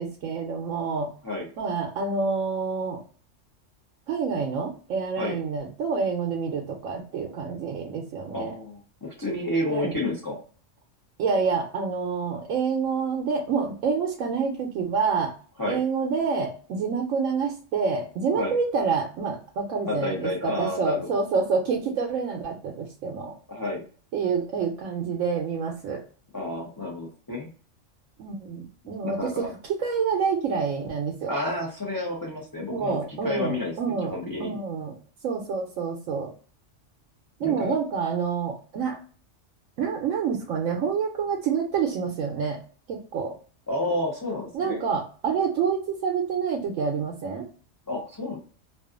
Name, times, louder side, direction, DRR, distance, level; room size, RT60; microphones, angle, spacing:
voice 1, 0.0-1.1 1.6-3.0 4.1-8.5 9.7-9.9 11.2-15.3 15.7-23.3 24.1-26.0 28.2-29.3 29.7-31.3 32.7-34.1 34.4-35.0 35.2-36.3 37.4-39.0 39.8-42.6 42.9-43.3 44.5-47.5, right 5 dB, 85° right, 0 dB, 1.0 m, -27 dB
voice 2, 8.3-10.4 15.6-15.8 18.3-18.5 19.8-21.1 23.5-23.8 26.3-27.5 29.0-29.5 31.3-33.7 34.0-34.6 37.4-37.7 43.7-44.8 47.9-48.4, left 1 dB, 25° left, -4 dB, 0.5 m, -30 dB
2.5 x 2.4 x 2.3 m, 0.41 s
omnidirectional pair, 1.3 m